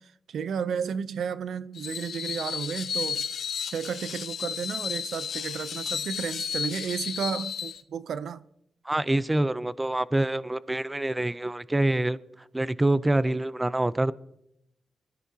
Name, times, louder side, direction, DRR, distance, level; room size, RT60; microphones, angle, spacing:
voice 1, 0.0-3.3 3.7-8.4, right 7 dB, 80° right, 0.5 m, -33 dB
Screech, 1.7-7.8, left 7 dB, 65° left, 0.7 m, -33 dB
voice 2, 8.9-12.2 12.5-14.1, right 1 dB, 15° right, 0.4 m, -26 dB
25.0 x 14.0 x 2.8 m
wide cardioid pair, 130°, 0 cm